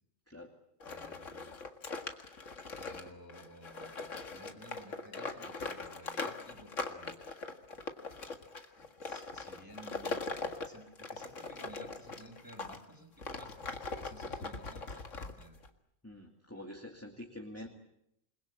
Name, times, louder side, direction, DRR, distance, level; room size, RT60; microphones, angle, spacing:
sound 1, 0.8-12.8 13.2-15.7, left 3 dB, 70° left, 2.2 m, -41 dB
voice 1, 0.8-1.5 2.8-7.3 8.8-15.6 17.6-17.7, equal, 15° right, 4 dB, 5.8 m, -54 dB
voice 2, 16.0-17.7, left 1 dB, 10° left, 1 dB, 2.4 m, -46 dB
28.5 x 21.5 x 8.5 m, 0.80 s
omnidirectional pair, 1.3 m